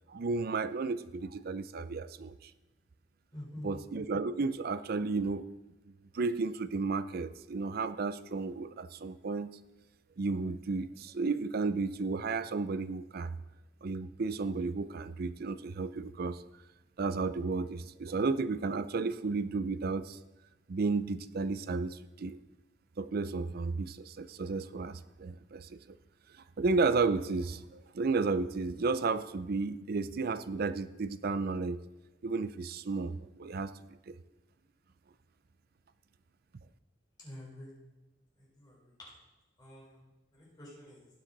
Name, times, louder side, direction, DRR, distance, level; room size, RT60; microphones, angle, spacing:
voice 1, 0.1-2.5 3.6-5.5 6.1-9.6 10.2-13.4 13.8-16.4 17.0-20.2 20.7-22.4 23.0-26.0 26.6-31.8 32.2-33.7 34.1-34.2, right 4 dB, 55° right, 14 dB, 0.5 m, -33 dB
voice 2, 3.3-3.7 37.2-37.7 38.4-39.1 39.6-40.0 40.3-41.1, left 1 dB, 25° left, -5 dB, 4.0 m, -48 dB
17.5 x 7.3 x 4.0 m, 1.1 s
head